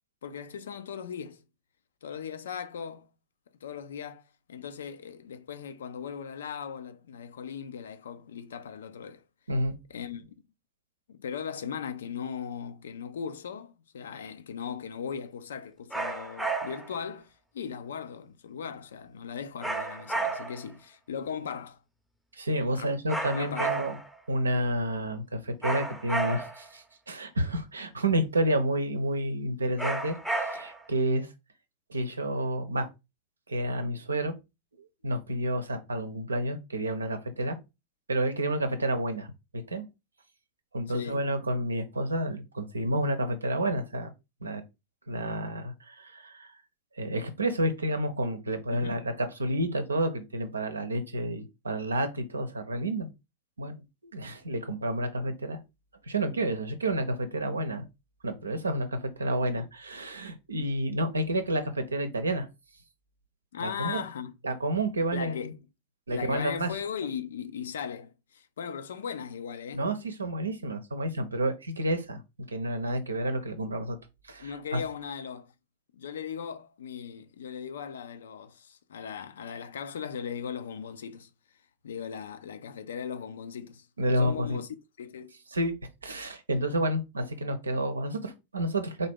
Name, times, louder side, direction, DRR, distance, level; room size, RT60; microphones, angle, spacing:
voice 1, 0.2-1.4 2.0-3.1 3.6-4.2 4.5-9.2 9.9-10.2 11.1-21.8 22.7-23.0 23.3-23.7 40.9-41.3 48.7-49.1 63.5-64.3 65.1-65.6 66.1-69.9 74.4-75.5 75.9-81.3 81.8-84.7 85.0-85.4, left 7 dB, 65° left, 0.4 m, -38 dB
sound 1, 15.9-16.9 19.6-20.7 23.1-24.1 25.6-26.7 29.8-30.9, right 3 dB, ahead, 0.6 m, -32 dB
voice 2, 22.3-24.0 24.3-31.3 31.9-32.9 33.5-34.4 34.8-37.6 38.1-39.9 40.7-44.1 44.4-44.6 45.1-46.5 46.9-53.1 53.6-55.6 56.0-57.9 58.2-62.5 63.6-64.0 64.4-65.5 66.1-66.7 69.7-74.0 74.2-74.8 84.0-84.6 85.5-85.7 86.0-89.1, right 1 dB, 75° right, 0.6 m, -30 dB
3.8 x 2.7 x 3.5 m
figure-of-eight pair, 90°, 0 cm